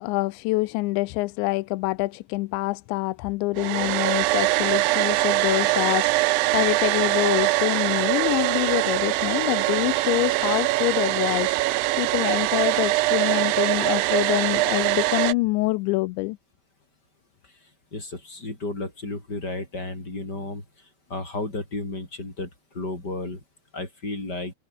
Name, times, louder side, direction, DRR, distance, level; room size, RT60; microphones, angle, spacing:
voice 1, 0.0-16.4, left 22 dB, 85° left, 2.9 m, -26 dB
Domestic sounds home sounds, 3.6-15.3, right 20 dB, 90° right, 3.1 m, -23 dB
voice 2, 17.9-20.6 21.1-22.5 22.7-23.4 23.7-24.5, left 2 dB, 20° left, 7.7 m, -32 dB
omnidirectional pair, 5.2 m